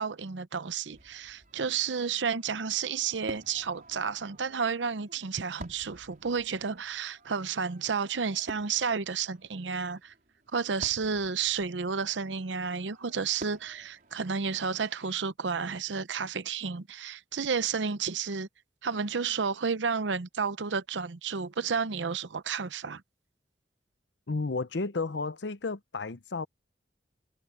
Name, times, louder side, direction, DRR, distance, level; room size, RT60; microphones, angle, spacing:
voice 1, 0.0-10.1 10.5-18.5 18.8-23.0, right 6 dB, 90° right, 0.7 m, -31 dB
Fireworks, 0.9-15.1, right 1 dB, 50° right, 4.4 m, -51 dB
voice 2, 24.3-26.5, left 3 dB, 75° left, 0.8 m, -32 dB
head